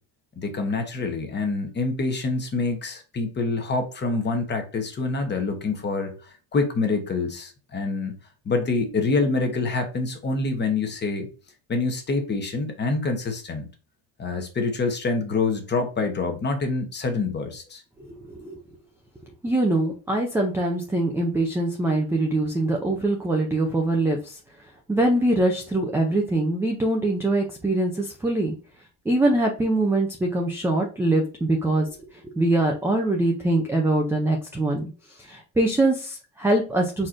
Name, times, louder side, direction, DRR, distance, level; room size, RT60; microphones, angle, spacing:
voice 1, 0.4-8.2 8.4-11.3 11.7-13.7 14.2-17.8, left 3 dB, 25° left, 0.9 m, -26 dB
voice 2, 18.0-18.6 19.4-24.4 24.9-28.5 29.1-34.8 35.2-37.1, right 2 dB, 5° right, 0.4 m, -23 dB
4.6 x 4.4 x 2.5 m
cardioid pair, 150°, 46 cm